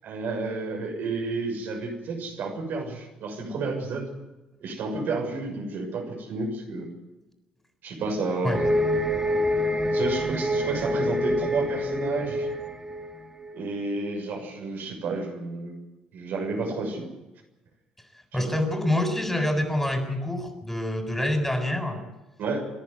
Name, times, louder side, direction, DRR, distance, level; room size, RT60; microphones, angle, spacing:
voice 1, 0.0-4.1 4.6-6.9 7.8-8.6 9.9-12.5 13.5-15.8 16.1-17.1 18.4-18.5 22.4-22.7, right 3 dB, 60° right, 1 dB, 6.7 m, -31 dB
sound 1, 8.5-13.5, left 1 dB, 20° right, 2.9 m, -26 dB
voice 2, 18.3-22.0, left 1 dB, 5° left, 5 dB, 7.1 m, -26 dB
29.5 x 11.0 x 9.7 m, 1.0 s
hypercardioid pair, 50°, 4 cm